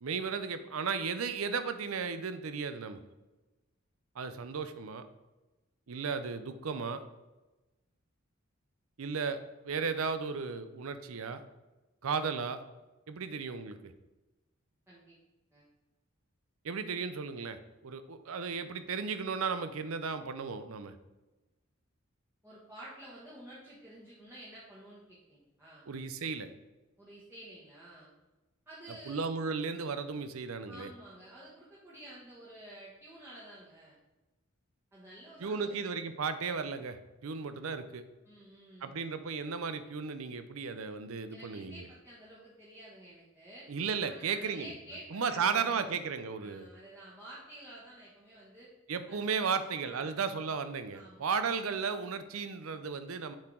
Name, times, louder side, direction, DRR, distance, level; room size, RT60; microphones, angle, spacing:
voice 1, 0.0-3.0 4.2-5.0 5.9-7.0 9.0-9.4 9.6-11.4 12.0-12.6 13.1-13.8 16.6-20.9 25.9-26.5 28.9-30.9 35.4-37.0 37.2-38.0 38.8-41.9 43.7-46.7 48.9-53.3, right 5 dB, 80° right, 10 dB, 0.6 m, -35 dB
voice 2, 14.9-15.2 15.5-15.6 22.4-25.8 27.0-28.1 28.7-29.2 30.7-34.0 34.9-35.8 38.2-39.0 41.3-43.7 44.1-45.9 46.4-48.7 49.1-50.1 50.9-51.3, right 1 dB, 10° right, -8 dB, 1.2 m, -51 dB
7.2 x 4.7 x 3.8 m, 1.1 s
head